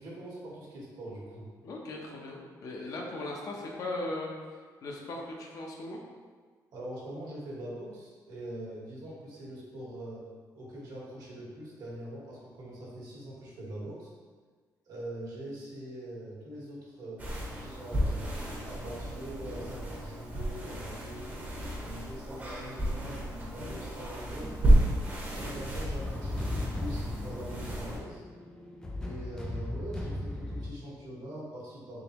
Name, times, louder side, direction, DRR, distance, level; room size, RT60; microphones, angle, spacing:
voice 1, 0.0-1.5 6.7-10.3 10.5-14.1 14.9-18.3 18.6-21.4 21.7-25.0 25.4-28.2 29.0-32.0, right 1 dB, 70° right, -5 dB, 1.2 m, -43 dB
voice 2, 1.6-6.0, left 2 dB, 55° left, -1 dB, 0.7 m, -38 dB
sound 1, 17.2-28.0, right 1 dB, 25° right, 0.7 m, -31 dB
sound 2, 24.4-30.7, left 1 dB, 10° left, 0.4 m, -37 dB
3.8 x 3.4 x 2.9 m, 1.6 s
cardioid pair, 145°, 7 cm